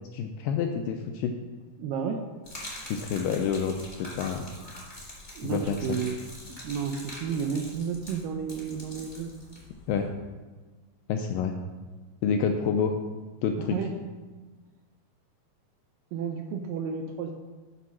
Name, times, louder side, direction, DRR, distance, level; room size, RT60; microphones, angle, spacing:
voice 1, 0.1-1.3 2.9-4.4 5.4-6.0 9.9-10.1 11.1-11.6 12.2-13.0 13.4-13.8, left 6 dB, 85° left, 4 dB, 2.0 m, -28 dB
voice 2, 1.8-2.2 5.4-6.2 6.6-9.3 13.7-13.9 16.1-17.3, right 6 dB, 80° right, 4 dB, 2.1 m, -32 dB
Gurgling / Liquid, 2.4-10.1, left 1 dB, 45° left, 0.4 m, -44 dB
8.4 x 5.4 x 6.0 m, 1.3 s
omnidirectional pair, 4.4 m